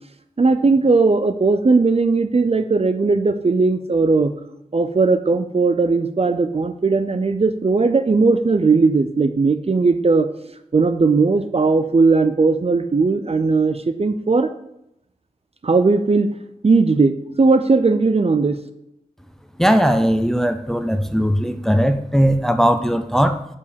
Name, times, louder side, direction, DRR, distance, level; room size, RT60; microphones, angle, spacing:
voice 1, 0.4-4.3 4.7-10.3 10.7-14.5 15.6-16.4 16.6-18.6, right 3 dB, 40° right, 9 dB, 0.5 m, -17 dB
voice 2, 19.6-23.4, equal, 5° left, 8 dB, 0.6 m, -18 dB
4.8 x 4.8 x 5.1 m, 0.81 s
cardioid pair, 40°, 15 cm